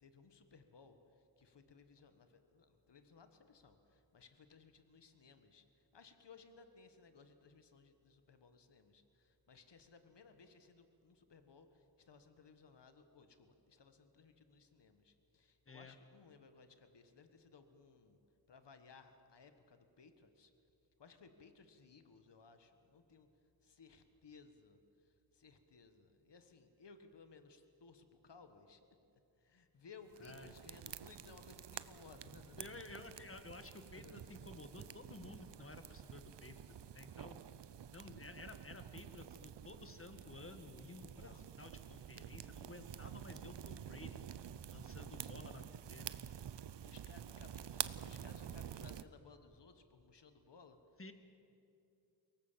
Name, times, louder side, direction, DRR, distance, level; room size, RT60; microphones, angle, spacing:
voice 1, 0.0-18.2 18.5-20.5 21.0-23.3 23.6-28.9 29.4-33.2 33.9-34.3 41.2-41.5 45.1-45.3 46.8-51.1, left 4 dB, 85° left, 8 dB, 1.5 m, -61 dB
sound 1, 30.1-49.0, right 9 dB, 85° right, 0.7 m, -49 dB
voice 2, 30.2-30.5 32.6-36.6 36.9-37.4 37.9-44.2 44.7-46.3 51.0-51.1, left 2 dB, 30° left, 8 dB, 1.8 m, -53 dB
23.0 x 18.0 x 7.4 m, 2.7 s
wide cardioid pair, 60°, 41 cm